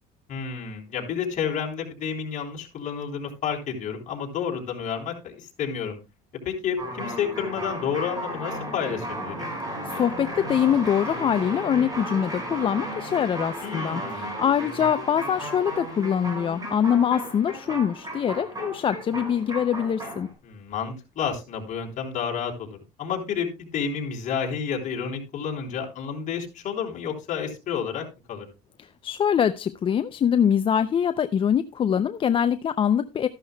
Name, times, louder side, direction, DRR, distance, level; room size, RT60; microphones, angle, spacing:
voice 1, 0.3-6.0 6.4-9.5 13.6-14.4 20.4-28.5, left 7 dB, 50° left, 0 dB, 3.7 m, -30 dB
sound 1, 6.8-20.3, right 1 dB, 20° right, 5.2 m, -34 dB
voice 2, 9.9-20.3 28.8-33.3, left 8 dB, 30° left, 11 dB, 0.5 m, -24 dB
13.5 x 11.5 x 2.2 m, 0.26 s
cardioid pair, 120°, 17 cm